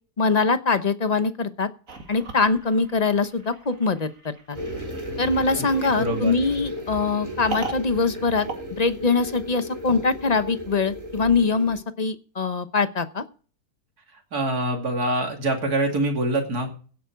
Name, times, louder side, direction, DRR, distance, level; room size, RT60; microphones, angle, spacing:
voice 1, 0.2-1.7 2.1-4.6 5.2-13.2, left 4 dB, 30° left, 11 dB, 0.8 m, -23 dB
sound 1, 1.9-9.5, right 3 dB, 55° right, 2.5 m, -40 dB
sound 2, 4.5-11.8, equal, 20° right, 4.5 m, -35 dB
voice 2, 5.5-6.3 14.3-16.7, right 1 dB, 70° right, 2 dB, 3.2 m, -25 dB
16.5 x 8.5 x 4.7 m, 0.40 s
omnidirectional pair, 1.7 m